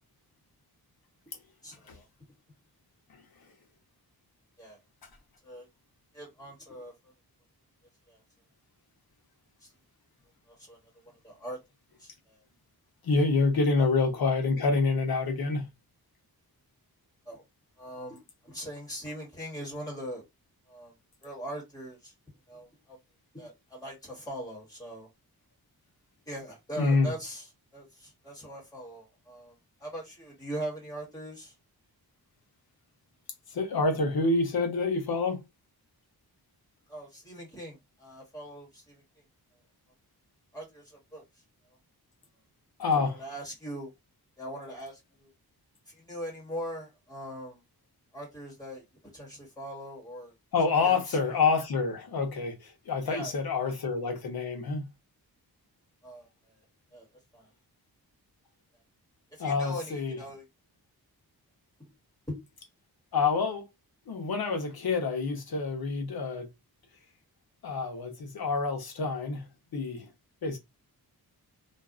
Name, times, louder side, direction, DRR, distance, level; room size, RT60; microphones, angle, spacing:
voice 1, 1.6-2.1 4.6-4.8 5.4-5.7 6.1-6.9 8.1-8.2 9.6-9.7 10.5-10.8 11.0-11.6 12.0-12.4 13.8-13.9 17.2-17.4 17.8-20.2 20.7-20.9 21.2-22.1 22.5-23.0 23.3-25.1 26.3-29.5 29.8-31.6 36.9-39.0 40.5-41.4 42.9-43.9 44.4-45.3 45.9-47.6 48.1-48.8 49.1-50.3 50.8-51.2 53.0-53.3 53.6-53.7 56.0-56.6 56.9-57.1 57.3-57.5 59.3-60.4 62.3-62.4, equal, 10° left, 1.4 m, -41 dB
voice 2, 13.0-15.7 26.8-27.1 33.5-35.4 42.8-43.1 50.5-54.9 59.4-60.2 63.1-63.6 64.1-66.5 67.6-69.5 69.7-70.1 70.4-70.6, left 4 dB, 70° left, 0.8 m, -27 dB
2.5 x 2.4 x 2.3 m
wide cardioid pair, 170°, 38 cm